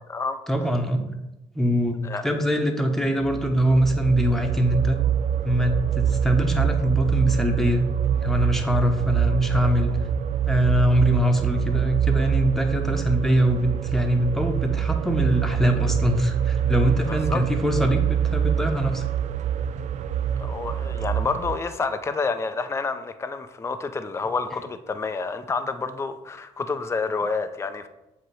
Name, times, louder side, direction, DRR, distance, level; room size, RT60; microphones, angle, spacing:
voice 1, 0.5-1.0 1.5-2.0 2.2-5.0 5.4-7.9 8.1-10.0 10.5-19.0, equal, 5° left, 3 dB, 1.0 m, -23 dB
sound 1, 3.2-21.6, right 9 dB, 65° right, 0.4 m, -25 dB
voice 2, 17.1-17.4 20.4-27.9, left 4 dB, 20° left, 8 dB, 0.5 m, -29 dB
7.8 x 2.9 x 4.8 m, 0.94 s
cardioid pair, 95°, 13 cm